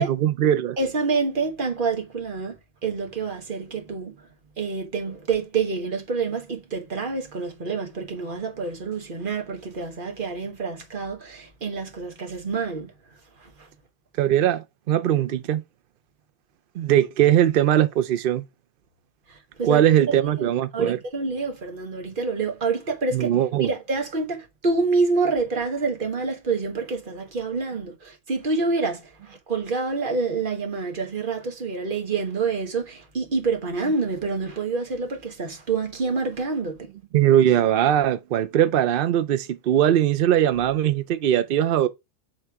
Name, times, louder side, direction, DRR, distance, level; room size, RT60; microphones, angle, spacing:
voice 1, 0.0-0.8 14.2-15.6 16.8-18.4 19.6-21.0 23.1-23.7 37.1-41.9, right 11 dB, 80° right, 0.5 m, -20 dB
voice 2, 0.8-2.5 2.8-4.1 4.6-12.9 19.6-19.8 20.1-23.3 23.6-29.0 29.3-36.8, right 4 dB, 35° right, 1.4 m, -27 dB
7.7 x 3.4 x 4.7 m
omnidirectional pair, 1.5 m